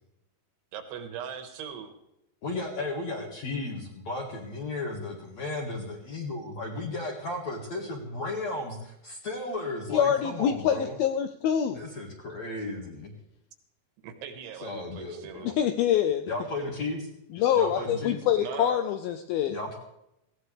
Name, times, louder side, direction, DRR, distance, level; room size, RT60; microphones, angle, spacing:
voice 1, 0.7-2.0 14.0-15.6 18.4-18.8, right 8 dB, 80° right, 7 dB, 3.5 m, -40 dB
voice 2, 2.4-11.0 11.7-13.1 14.6-15.5 16.3-17.1 17.5-18.2 19.5-19.8, left 2 dB, 50° left, -2 dB, 2.6 m, -34 dB
voice 3, 9.9-11.8 15.4-16.3 17.3-19.6, left 9 dB, 80° left, 7 dB, 2.1 m, -25 dB
19.5 x 16.0 x 3.4 m, 0.85 s
omnidirectional pair, 4.9 m